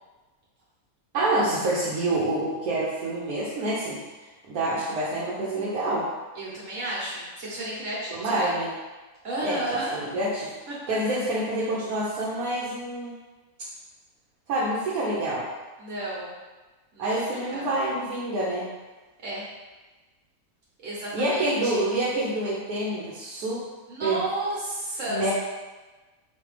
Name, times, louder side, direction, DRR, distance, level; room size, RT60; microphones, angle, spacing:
voice 1, 1.1-4.0 4.5-6.1 8.1-8.7 9.4-9.6 9.9-10.5 10.9-13.1 14.5-15.4 17.0-18.6 21.1-23.6 24.0-24.2 25.1-25.3, right 1 dB, 75° right, -8 dB, 1.3 m, -27 dB
voice 2, 6.3-8.5 9.2-10.1 10.7-11.0 11.6-11.7 15.8-16.3 16.9-17.7 19.2-19.4 20.8-21.8 23.9-25.3, right 1 dB, 55° right, -6 dB, 1.7 m, -32 dB
4.2 x 3.3 x 3.3 m, 1.2 s
omnidirectional pair, 1.6 m